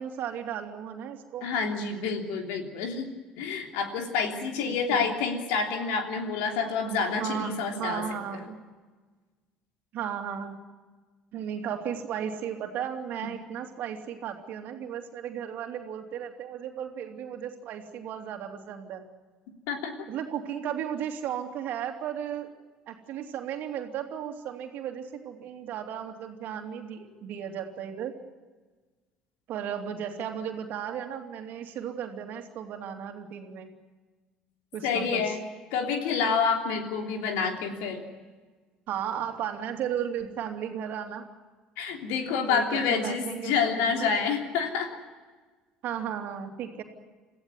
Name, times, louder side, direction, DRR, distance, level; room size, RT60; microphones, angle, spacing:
voice 1, 0.0-1.5 4.4-5.1 6.8-8.6 9.9-10.6 11.3-19.0 20.1-22.5 22.9-28.2 29.5-33.7 34.7-35.4 38.9-41.3 42.5-44.1 45.8-46.8, right 8 dB, 55° right, 4 dB, 2.8 m, -35 dB
voice 2, 1.4-3.1 3.4-8.0 19.7-20.1 34.8-35.4 35.7-38.0 41.8-45.0, left 5 dB, 65° left, 3 dB, 3.1 m, -28 dB
26.5 x 15.0 x 9.7 m, 1.4 s
figure-of-eight pair, 60°, 4 cm